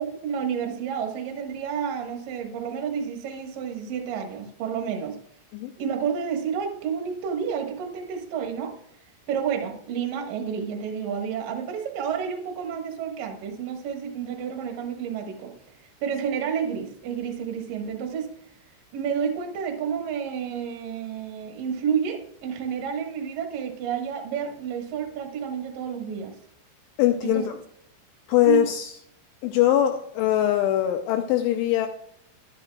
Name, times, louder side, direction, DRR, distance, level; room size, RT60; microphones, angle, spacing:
voice 1, 0.0-5.2 5.8-8.7 9.3-15.5 16.0-18.3 18.9-26.3 27.2-27.5 28.4-28.6, right 7 dB, 65° right, 2 dB, 2.3 m, -30 dB
voice 2, 27.0-27.5 28.3-28.9 29.4-31.9, left 12 dB, 85° left, 6 dB, 2.7 m, -22 dB
12.0 x 10.5 x 2.3 m, 0.69 s
omnidirectional pair, 5.9 m